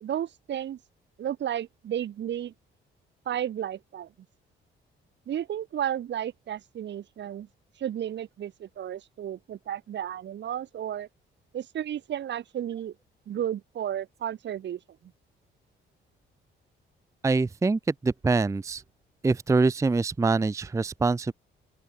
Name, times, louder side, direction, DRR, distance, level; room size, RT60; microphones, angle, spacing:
voice 1, 0.0-0.8 1.2-2.5 3.3-4.1 5.3-7.5 7.8-11.1 11.5-12.9 13.3-14.8, right 10 dB, 65° right, 1.8 m, -33 dB
voice 2, 17.2-18.8 19.2-21.3, right 3 dB, 15° right, 0.5 m, -24 dB
open air
cardioid pair, 90°, 20 cm